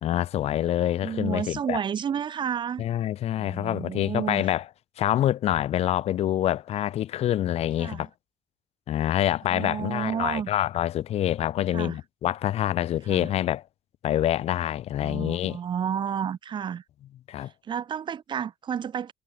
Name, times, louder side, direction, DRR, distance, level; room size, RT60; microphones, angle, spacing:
voice 1, 0.0-1.8 2.8-4.6 5.0-8.1 8.9-13.6 14.0-15.6 17.3-17.5, left 12 dB, 70° left, 0.6 m, -26 dB
voice 2, 1.0-2.8 3.4-4.5 7.8-8.0 9.4-10.5 11.7-12.0 13.1-13.3 15.0-16.8 17.6-19.1, right 8 dB, 45° right, 1.4 m, -31 dB
wide cardioid pair, 170°, 11 cm